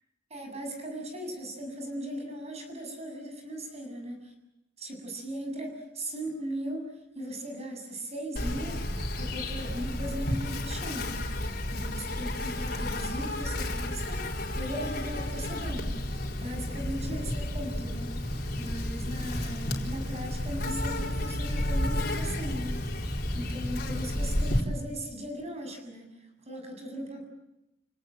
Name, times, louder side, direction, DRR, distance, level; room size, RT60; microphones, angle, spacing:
voice 1, 0.3-4.3 4.8-11.4 11.7-16.0 16.4-26.1 26.5-27.3, equal, 35° right, 4 dB, 7.3 m, -38 dB
Insect, 8.4-24.6, left 1 dB, 55° left, 4.4 m, -32 dB
30.0 x 18.5 x 9.0 m, 0.91 s
head